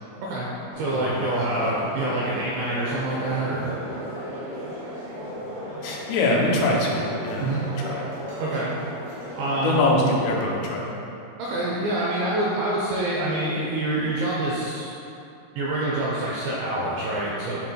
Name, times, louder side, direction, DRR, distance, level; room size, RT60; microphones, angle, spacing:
voice 1, 0.2-0.5 0.8-3.7 7.4-7.7 8.4-8.8 9.4-9.9 11.4-14.9 15.6-17.6, right 2 dB, 80° right, -5 dB, 2.6 m, -26 dB
sound 1, 0.7-9.8, equal, 60° right, 2.3 m, -35 dB
voice 2, 0.9-1.3 1.5-1.8 5.8-7.5 7.8-8.0 9.6-11.0, left 2 dB, 85° left, -3 dB, 3.3 m, -24 dB
10.0 x 4.4 x 2.3 m, 2.8 s
omnidirectional pair, 5.8 m